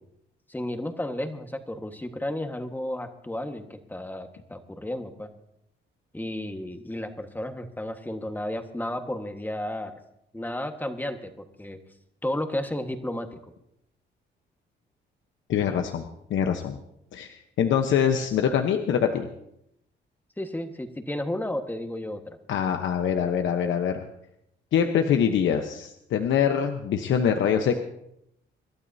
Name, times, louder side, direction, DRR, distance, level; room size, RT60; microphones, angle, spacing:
voice 1, 0.5-5.3 6.1-9.9 10.3-11.8 12.2-13.4 20.4-22.4, left 1 dB, 10° left, 6 dB, 1.5 m, -33 dB
voice 2, 15.5-16.8 17.1-19.3 22.5-24.0 24.7-27.8, left 8 dB, 75° left, 5 dB, 1.0 m, -24 dB
26.5 x 12.0 x 2.8 m, 0.81 s
cardioid pair, 90°, 20 cm